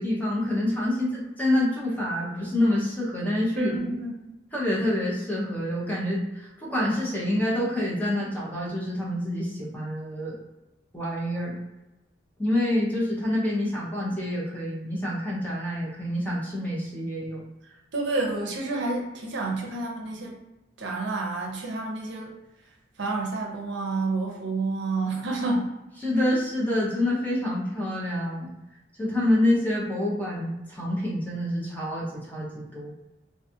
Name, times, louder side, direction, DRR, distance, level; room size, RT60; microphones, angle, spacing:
voice 1, 0.0-3.7 4.5-10.4 10.9-11.6 12.4-17.4 26.0-28.5 29.0-32.9, left 1 dB, 10° left, -5 dB, 0.6 m, -27 dB
voice 2, 3.6-4.1 13.6-13.7 17.9-20.4 20.8-22.4 23.0-25.7, right 3 dB, 65° right, 0 dB, 0.6 m, -29 dB
2.5 x 2.3 x 2.7 m, 0.99 s
head